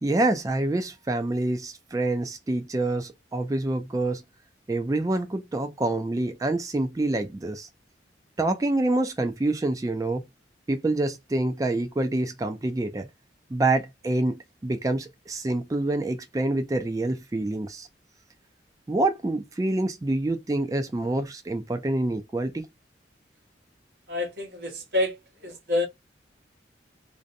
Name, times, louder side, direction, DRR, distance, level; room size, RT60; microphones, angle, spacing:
voice 1, 0.0-4.2 4.7-7.7 8.4-10.2 10.7-13.1 13.5-17.9 18.9-22.7, right 2 dB, 20° right, 0.3 m, -26 dB
voice 2, 24.1-25.9, left 2 dB, 55° right, 1.0 m, -28 dB
2.6 x 2.1 x 2.5 m
head